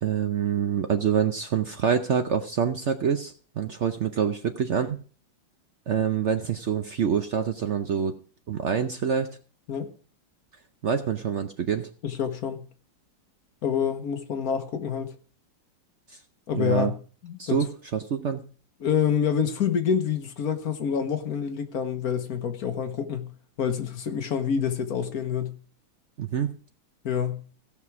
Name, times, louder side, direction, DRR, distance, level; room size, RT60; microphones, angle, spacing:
voice 1, 0.0-5.0 5.9-8.2 8.5-9.3 10.8-11.9 16.1-16.2 16.5-16.9 17.4-18.4 26.2-26.5, right 7 dB, 65° right, 0.7 m, -26 dB
voice 2, 12.0-12.6 13.6-15.1 16.5-16.9 17.2-17.6 18.8-23.3 23.6-25.6 27.0-27.4, left 7 dB, 55° left, 1.5 m, -27 dB
16.5 x 6.0 x 4.7 m
omnidirectional pair, 2.0 m